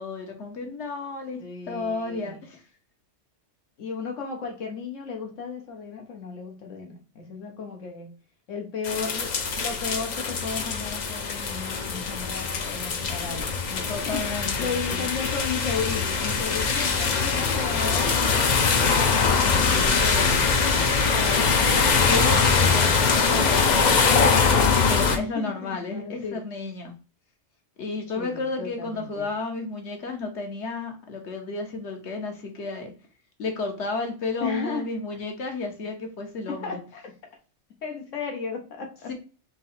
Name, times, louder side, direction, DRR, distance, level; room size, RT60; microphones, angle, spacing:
voice 1, 0.0-1.4 1.7-2.6 13.9-15.1 22.1-24.0 24.9-26.9 27.8-32.9 33.4-36.8 39.1-39.2, left 3 dB, 65° left, 3 dB, 1.3 m, -32 dB
voice 2, 1.4-2.4 3.8-8.1 8.5-22.0 25.1-26.4 28.2-29.3 34.4-34.9 36.5-37.1 37.8-39.1, left 5 dB, 85° left, 2 dB, 1.4 m, -35 dB
sound 1, 8.8-25.2, left 5 dB, 50° left, 0.6 m, -22 dB
3.8 x 2.8 x 4.2 m, 0.35 s
omnidirectional pair, 1.3 m